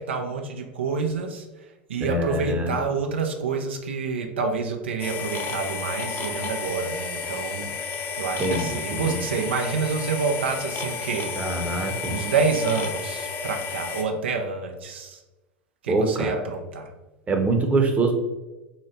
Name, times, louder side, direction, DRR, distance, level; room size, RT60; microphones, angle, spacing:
voice 1, 0.0-7.7 8.2-11.3 12.1-15.2 15.8-16.9, right 5 dB, 90° right, 3 dB, 0.4 m, -28 dB
voice 2, 2.0-2.7 8.4-9.2 11.4-12.2 15.9-16.4 17.3-18.1, right 2 dB, 25° right, 3 dB, 0.7 m, -24 dB
sound 1, 5.0-14.0, left 5 dB, 35° left, 0.6 m, -32 dB
3.8 x 2.1 x 3.9 m, 1.1 s
hypercardioid pair, 95°, 6 cm